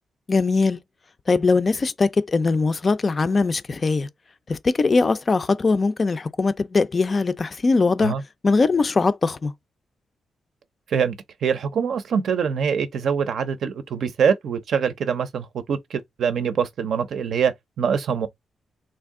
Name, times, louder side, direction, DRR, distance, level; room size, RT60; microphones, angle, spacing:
voice 1, 0.3-0.8 1.3-4.1 4.5-8.1 8.4-9.5, left 4 dB, 35° left, 0.4 m, -21 dB
voice 2, 10.9-18.3, right 7 dB, 70° right, 0.6 m, -24 dB
3.4 x 2.6 x 3.6 m
cardioid pair, 115°, 0 cm